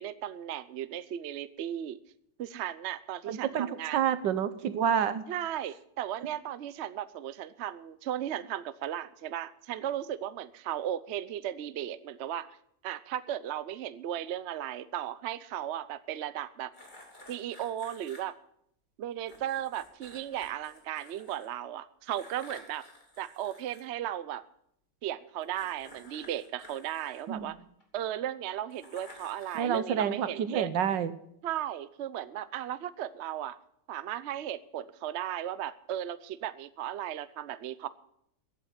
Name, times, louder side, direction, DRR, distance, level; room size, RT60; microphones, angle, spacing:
voice 1, 0.0-2.0 2.4-4.0 5.3-12.5 12.8-16.7 17.3-18.4 19.0-22.8 23.2-24.4 25.0-27.6 27.9-30.7 31.4-33.6 33.9-37.9, right 11 dB, 60° right, 15 dB, 0.7 m, -36 dB
voice 2, 3.3-5.2 27.3-27.5 29.5-31.1, right 8 dB, 80° right, 13 dB, 1.6 m, -28 dB
sound 1, 16.7-18.2 19.3-21.5 22.1-23.8 25.4-27.8 28.7-29.8, left 1 dB, 25° left, 2.8 m, -53 dB
14.5 x 8.9 x 8.1 m, 0.74 s
omnidirectional pair, 1.9 m